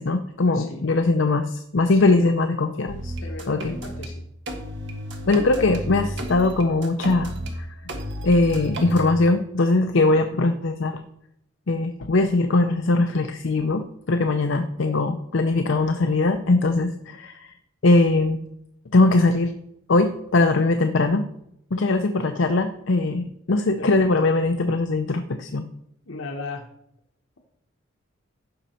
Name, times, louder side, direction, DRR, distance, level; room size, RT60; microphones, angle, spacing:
voice 1, 0.0-3.1 3.5-3.8 5.3-7.3 8.2-11.0 11.7-17.4 17.8-18.4 18.9-19.5 19.9-21.3 21.7-25.7, left 2 dB, 65° left, 7 dB, 0.6 m, -21 dB
voice 2, 0.5-0.9 1.9-2.4 3.2-4.2 5.4-5.8 23.8-24.3 26.1-26.7, left 3 dB, 85° left, 2 dB, 1.3 m, -37 dB
sound 1, 2.9-4.1 4.5-7.5 7.9-9.1, equal, 60° right, 1.7 m, -32 dB
15.5 x 6.2 x 4.4 m, 0.77 s
head